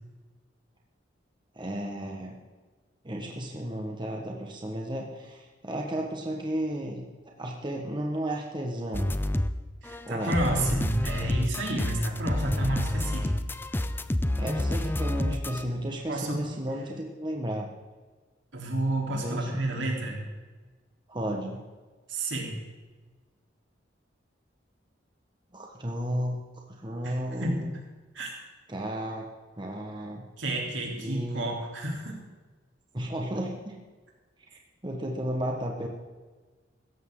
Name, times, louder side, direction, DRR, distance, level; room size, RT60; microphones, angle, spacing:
voice 1, 1.5-2.4 3.0-7.0 7.4-9.1 10.0-10.4 14.4-17.7 19.1-19.6 21.1-21.6 25.5-26.4 26.7-27.7 28.7-29.3 29.6-30.2 30.9-31.4 32.9-33.8 34.8-35.9, right 1 dB, 25° right, 0 dB, 1.5 m, -33 dB
sound 1, 8.9-9.6 9.8-15.6, left 1 dB, 10° left, 0.5 m, -29 dB
voice 2, 9.8-13.4 16.1-16.4 18.5-20.2 22.1-22.5 27.0-27.1 27.4-27.6 28.1-28.3 30.4-32.2, right 1 dB, 80° right, -1 dB, 3.7 m, -30 dB
16.5 x 14.0 x 3.9 m, 1.3 s
head